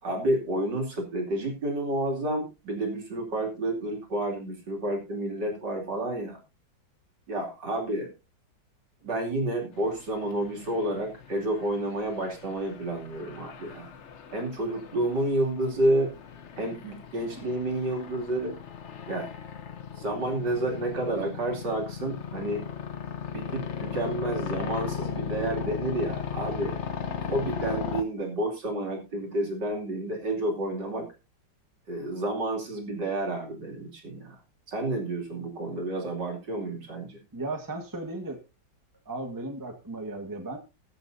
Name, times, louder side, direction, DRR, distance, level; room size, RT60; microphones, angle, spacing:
voice 1, 0.0-6.4 7.3-8.1 9.0-13.9 14.3-16.1 16.6-18.6 19.1-19.3 20.0-22.6 23.3-26.8 27.3-31.1 31.9-34.4 34.7-37.2, right 1 dB, 60° right, 1 dB, 3.4 m, -30 dB
sound 1, 9.7-28.0, left 7 dB, 45° left, 1.0 m, -37 dB
voice 2, 37.3-38.4 39.0-40.6, right 2 dB, 10° right, 4 dB, 1.5 m, -35 dB
21.5 x 7.4 x 2.7 m, 0.28 s
omnidirectional pair, 2.1 m